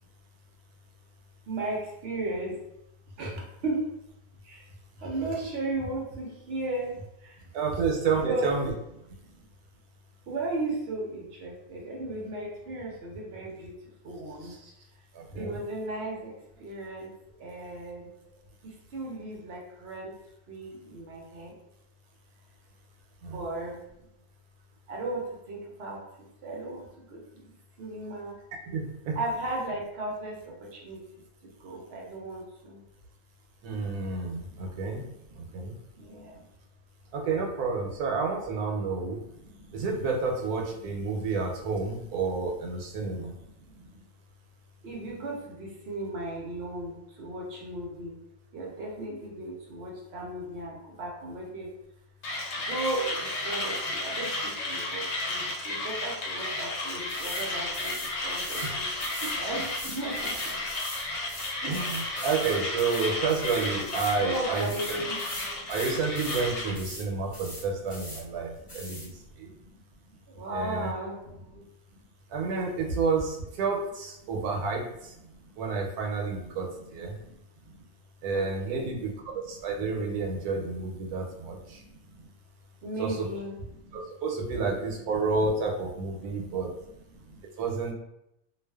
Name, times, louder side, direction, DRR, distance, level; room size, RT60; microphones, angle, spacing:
voice 1, 1.5-2.6 3.2-3.9 4.4-4.7 5.0-7.5 8.1-8.5 9.2-9.5 10.3-13.8 14.0-14.5 15.3-17.1 17.4-18.1 18.6-20.1 20.5-21.5 23.3-23.8 24.9-26.0 26.4-28.4 29.1-31.0 31.4-32.8 34.3-35.6 36.0-36.4 39.4-39.8 41.1-41.3 43.0-44.0 44.8-48.2 48.5-51.7 52.5-58.9 59.4-60.7 61.9-62.3 64.1-65.7 67.0-67.5 68.5-69.8 70.1-71.6 72.9-73.0 75.3-75.4 76.8-77.8 78.3-79.0 79.4-79.5 81.2-82.3 82.8-84.0 86.3-86.5 87.1-87.4, right 2 dB, 60° right, -2 dB, 0.7 m, -36 dB
voice 2, 7.5-8.7 14.4-14.7 15.1-15.6 16.6-16.7 23.2-23.4 28.7-29.2 33.6-35.0 35.4-35.7 37.1-39.2 39.7-43.3 58.6-58.7 59.2-59.6 61.6-65.0 65.5-69.5 70.5-70.9 71.5-71.6 72.3-75.1 75.6-77.1 78.2-81.8 83.0-83.3 83.9-86.7 87.6-87.9, right 4 dB, 85° right, 0 dB, 1.1 m, -30 dB
Mechanisms, 52.2-66.8, left 2 dB, 65° left, 0.9 m, -33 dB
sound 1, 57.1-57.5 57.7-58.7 59.0-64.2 64.5-66.5 66.7-67.1 67.3-68.2 68.7-69.1, left 1 dB, 30° left, 0.6 m, -41 dB
2.4 x 2.3 x 2.2 m, 0.82 s
omnidirectional pair, 1.6 m